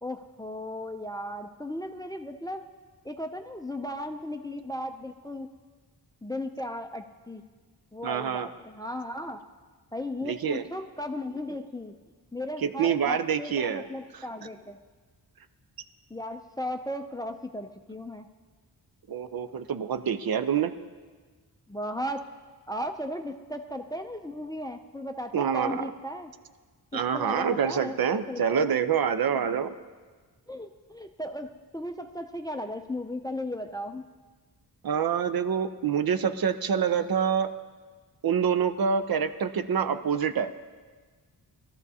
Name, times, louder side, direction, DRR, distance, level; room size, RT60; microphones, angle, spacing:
voice 1, 0.0-2.7 3.0-5.5 6.2-7.4 7.9-9.5 9.9-11.9 12.3-14.8 16.1-18.3 21.7-22.3 22.7-26.3 26.9-28.8 30.5-34.0, left 1 dB, 10° left, 6 dB, 0.4 m, -36 dB
voice 2, 8.0-8.5 10.2-10.7 12.6-13.8 14.1-14.2 19.1-20.7 25.3-25.8 26.9-29.7 34.8-37.5 38.2-40.5, right 7 dB, 65° right, 10 dB, 0.6 m, -26 dB
21.0 x 13.5 x 2.8 m, 1.5 s
wide cardioid pair, 170°, 39 cm